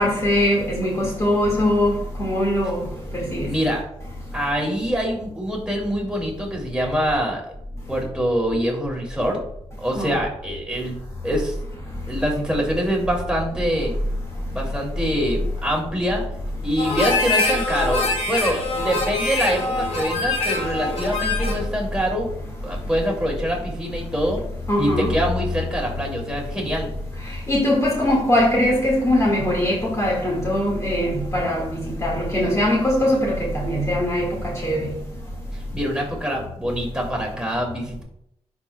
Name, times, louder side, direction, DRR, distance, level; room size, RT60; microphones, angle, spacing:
voice 1, 0.0-2.8 3.3-3.5 10.0-10.1 24.7-25.1 27.5-34.3 34.6-34.8, left 1 dB, 25° left, 2.0 m, -21 dB
voice 2, 3.4-3.8 4.3-7.4 7.9-9.4 9.8-10.9 11.2-11.6 12.1-13.9 14.5-16.2 16.6-22.3 22.6-24.4 24.8-26.9 35.5-38.0, equal, 5° right, 2.6 m, -25 dB
Harmonica, 16.8-21.7, left 3 dB, 75° left, 2.2 m, -24 dB
11.0 x 4.8 x 2.3 m
cardioid pair, 75°, 11 cm